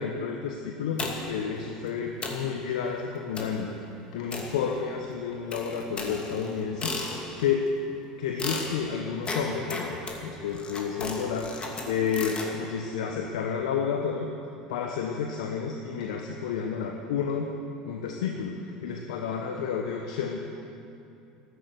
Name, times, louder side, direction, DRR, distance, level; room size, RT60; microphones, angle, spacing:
voice 1, 0.0-3.7 4.1-7.6 8.2-14.3 14.7-17.5 17.8-20.4, left 6 dB, 70° left, 3 dB, 1.1 m, -31 dB
sound 1, 1.0-1.5 1.9-2.0 2.2-2.5 3.4-3.7 4.3-5.0 5.5-7.5 8.4-12.5, left 3 dB, 30° left, 2.6 m, -35 dB
13.5 x 12.5 x 8.1 m, 2.7 s
hypercardioid pair, 75°, 4 cm